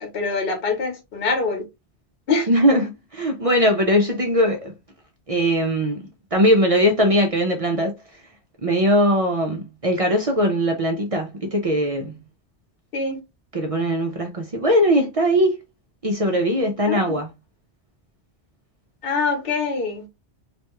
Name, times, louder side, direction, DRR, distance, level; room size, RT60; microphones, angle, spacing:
voice 1, 0.0-1.6 2.3-2.5 12.9-13.2 16.9-17.2 19.0-20.0, left 4 dB, 55° left, 1.0 m, -24 dB
voice 2, 2.5-4.7 5.3-7.9 8.6-12.2 13.5-15.6 16.0-17.3, equal, 55° right, 0.4 m, -20 dB
2.5 x 2.2 x 2.8 m
omnidirectional pair, 1.2 m